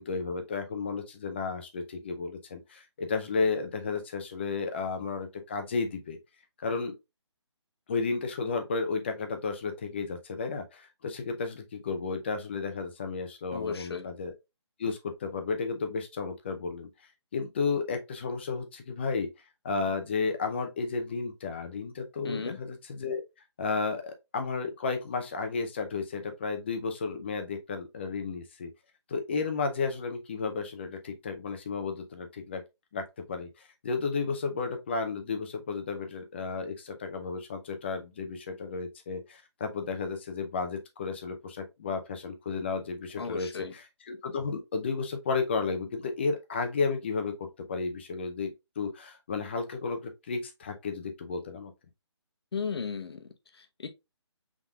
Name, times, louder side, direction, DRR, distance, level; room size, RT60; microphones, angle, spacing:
voice 1, 0.0-6.2 6.6-7.0 7.9-14.3 14.8-16.9 17.3-19.3 19.6-23.2 23.6-28.7 29.1-32.6 32.9-51.7, left 4 dB, 25° left, 0.5 m, -33 dB
voice 2, 13.5-14.1 22.2-22.6 43.2-43.7 52.5-53.9, left 5 dB, 60° left, 0.8 m, -35 dB
5.6 x 3.6 x 2.3 m
hypercardioid pair, 165°, 15 cm